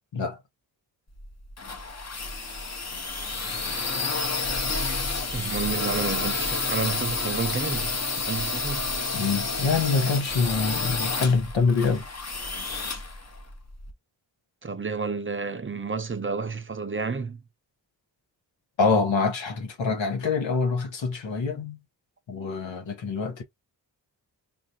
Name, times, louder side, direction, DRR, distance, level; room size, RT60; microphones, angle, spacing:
sound 1, 1.2-13.9, left 3 dB, 35° left, 0.9 m, -30 dB
voice 1, 5.3-8.9 14.6-17.4, right 5 dB, 30° right, 0.5 m, -30 dB
voice 2, 9.1-12.0 18.8-21.8 22.3-23.4, left 4 dB, 90° left, 1.1 m, -25 dB
3.8 x 2.3 x 2.7 m
cardioid pair, 45°, 44 cm